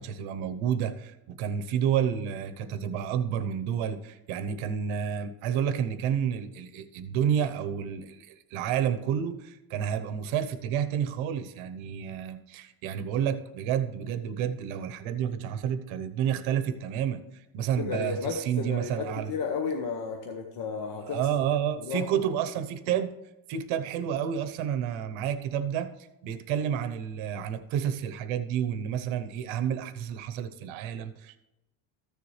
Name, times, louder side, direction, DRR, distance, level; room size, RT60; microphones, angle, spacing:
voice 1, 0.0-17.2 17.5-19.3 21.1-23.1 23.5-25.9 26.2-31.4, right 9 dB, 70° right, 11 dB, 1.0 m, -30 dB
voice 2, 17.8-21.3 21.8-22.2, left 5 dB, 45° left, 3 dB, 1.0 m, -33 dB
14.0 x 6.9 x 3.2 m, 0.97 s
cardioid pair, 170°, 50 cm